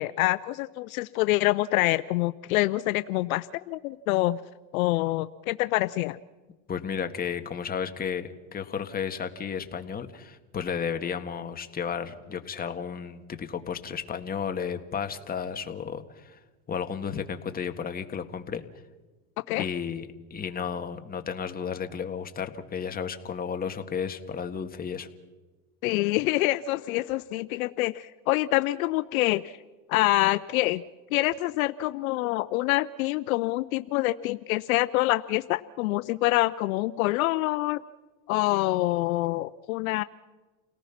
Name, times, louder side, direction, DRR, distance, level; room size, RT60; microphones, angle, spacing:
voice 1, 0.0-4.4 4.7-6.2 19.5-19.7 25.8-29.5 29.9-30.8 31.1-37.8 38.3-40.0, left 18 dB, 70° left, 15 dB, 0.7 m, -26 dB
voice 2, 6.7-16.4 16.7-18.6 19.5-25.1, left 7 dB, 20° left, 7 dB, 1.7 m, -33 dB
29.0 x 18.5 x 5.9 m, 1.2 s
supercardioid pair, 120°, 44 cm